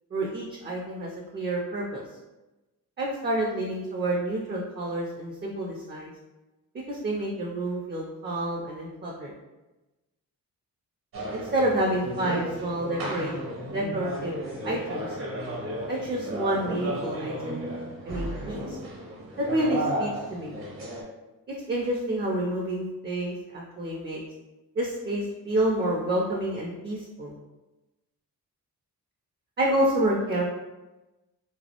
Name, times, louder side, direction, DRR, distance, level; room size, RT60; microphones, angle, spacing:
voice 1, 0.1-2.0 3.0-6.1 6.9-9.3 11.3-13.4 13.7-14.3 14.6-15.2 15.9-17.6 18.0-18.8 19.4-20.6 21.7-24.2 24.8-27.3 29.6-30.4, right 1 dB, 30° right, -2 dB, 0.4 m, -28 dB
sound 1, 11.1-21.0, right 1 dB, 65° right, 0.9 m, -34 dB
2.3 x 2.0 x 2.8 m, 1.1 s
cardioid pair, 60°, 37 cm